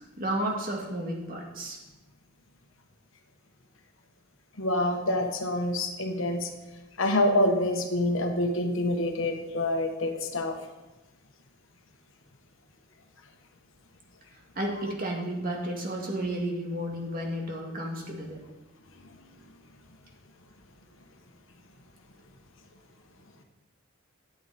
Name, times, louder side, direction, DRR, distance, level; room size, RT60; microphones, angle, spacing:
voice 1, 0.2-1.8 14.6-18.4, right 1 dB, 45° right, -1 dB, 2.2 m, -32 dB
voice 2, 4.6-6.4 7.0-10.5, left 1 dB, 70° left, 4 dB, 1.3 m, -26 dB
12.0 x 8.8 x 4.3 m, 1.1 s
head